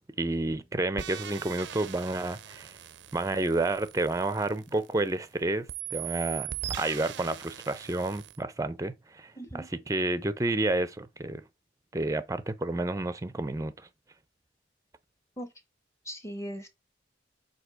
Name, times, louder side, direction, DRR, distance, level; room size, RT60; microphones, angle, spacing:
voice 1, 0.2-2.8 3.1-11.4 11.9-13.9, right 2 dB, 15° right, 0.5 m, -30 dB
sound 1, 1.0-5.3 5.7-8.4, right 10 dB, 70° right, 0.5 m, -40 dB
voice 2, 9.4-9.7 15.4-15.5 16.0-16.7, equal, 15° left, 0.9 m, -38 dB
8.0 x 2.8 x 4.9 m
head